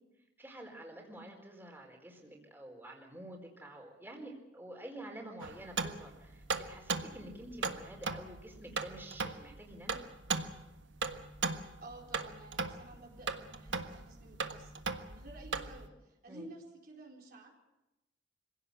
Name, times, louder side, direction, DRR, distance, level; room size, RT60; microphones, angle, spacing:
voice 1, 0.4-9.9 16.3-16.4, right 1 dB, 10° right, 1 dB, 4.4 m, -49 dB
sound 1, 5.4-15.9, right 4 dB, 80° right, 1.4 m, -38 dB
voice 2, 11.8-14.8 15.1-17.5, right 2 dB, 55° right, 0 dB, 4.4 m, -52 dB
25.5 x 17.0 x 8.1 m, 0.97 s
head